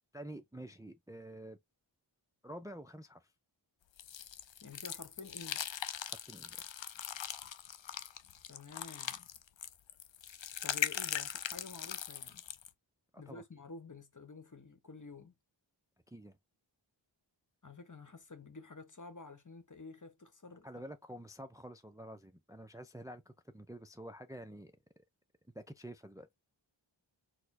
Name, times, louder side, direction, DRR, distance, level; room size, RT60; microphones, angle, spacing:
voice 1, 0.1-1.6 2.4-3.3 6.1-6.7 13.1-13.4 16.1-16.4 20.6-24.7 25.5-26.3, right 1 dB, 10° right, 0.5 m, -48 dB
sound 1, 4.0-12.7, left 9 dB, 75° left, 0.6 m, -40 dB
voice 2, 4.6-5.6 8.5-9.3 10.6-12.4 13.2-15.3 17.6-20.7, left 3 dB, 40° left, 1.1 m, -50 dB
4.3 x 2.2 x 4.2 m
wide cardioid pair, 45°, 46 cm